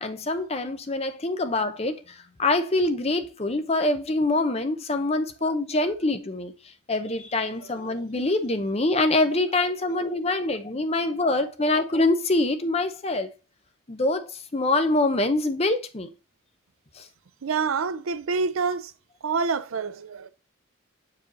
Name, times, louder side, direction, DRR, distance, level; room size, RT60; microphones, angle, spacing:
voice 1, 0.0-6.5 6.9-13.3 13.9-16.1 17.0-17.1, left 2 dB, 30° left, 0.6 m, -25 dB
voice 2, 17.4-18.9 19.2-20.3, right 5 dB, 80° right, 0.5 m, -27 dB
6.3 x 4.9 x 3.9 m
head